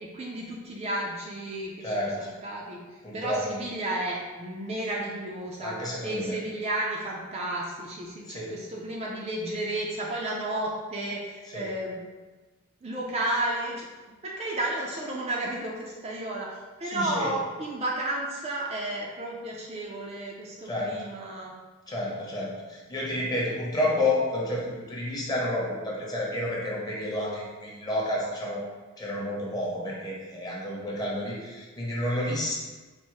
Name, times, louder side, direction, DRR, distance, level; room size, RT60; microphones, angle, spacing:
voice 1, 0.0-2.8 3.1-5.7 6.0-12.0 12.8-21.5, right 1 dB, 30° right, -3 dB, 0.5 m, -32 dB
voice 2, 1.8-2.3 3.0-3.4 5.6-6.4 8.3-8.5 11.5-11.7 16.8-17.3 20.7-21.0 21.9-28.6 29.0-32.6, left 1 dB, 20° left, -4 dB, 0.8 m, -30 dB
4.3 x 2.1 x 4.6 m, 1.3 s
head